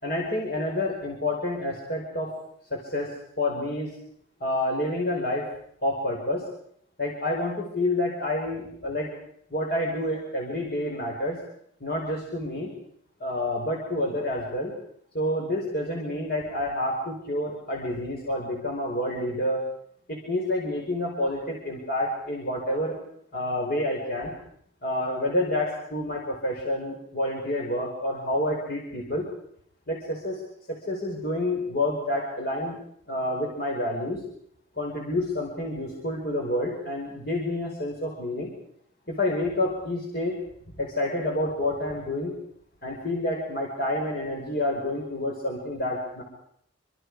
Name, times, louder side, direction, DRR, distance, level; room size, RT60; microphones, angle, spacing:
voice 1, 0.0-2.3 2.7-3.1 3.4-3.9 4.4-5.5 5.8-6.5 7.0-9.1 9.5-11.4 11.8-12.7 13.2-14.7 15.1-19.6 20.1-23.0 23.3-24.4 24.8-29.3 29.9-30.4 30.7-32.8 33.1-34.2 34.8-38.5 39.1-40.4 40.8-42.4 42.8-46.2, left 1 dB, 50° left, -1 dB, 5.0 m, -28 dB
27.5 x 25.0 x 4.9 m, 0.67 s
head